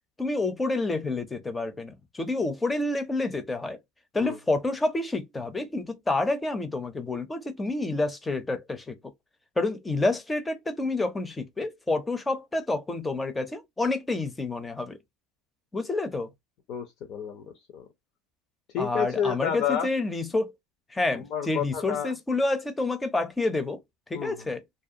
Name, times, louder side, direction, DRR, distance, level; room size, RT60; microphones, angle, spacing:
voice 1, 0.2-3.8 4.1-8.9 9.6-15.0 15.7-16.3 18.8-20.5 20.9-23.8 24.1-24.6, left 2 dB, 15° left, 0.5 m, -28 dB
voice 2, 16.7-17.9 18.7-19.9 21.1-22.1 24.1-24.5, left 8 dB, 55° left, 0.6 m, -30 dB
2.5 x 2.2 x 2.7 m
supercardioid pair, 105°, 0 cm